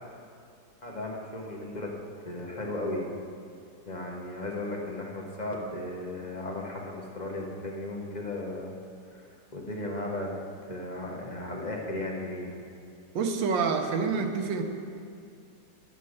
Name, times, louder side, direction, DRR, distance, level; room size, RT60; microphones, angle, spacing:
voice 1, 0.8-1.9 2.2-3.1 3.9-8.8 9.1-10.3 10.6-12.6, left 1 dB, 30° left, -1 dB, 1.1 m, -35 dB
voice 2, 13.1-14.6, right 5 dB, 90° right, 5 dB, 1.6 m, -27 dB
11.0 x 5.5 x 6.5 m, 2.3 s
omnidirectional pair, 2.0 m